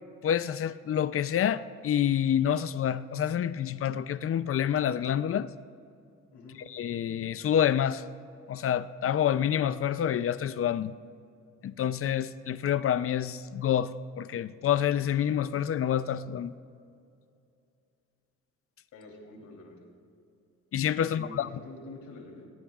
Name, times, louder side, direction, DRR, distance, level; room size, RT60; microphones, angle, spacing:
voice 1, 0.2-5.5 6.7-8.0 8.5-10.9 11.6-13.9 14.2-16.5 20.7-21.5, left 9 dB, 50° left, 0.5 m, -27 dB
voice 2, 6.3-6.6 18.9-19.8 21.0-22.5, left 2 dB, 70° left, 3.3 m, -46 dB
18.5 x 18.5 x 2.4 m
cardioid pair, 90°, 30 cm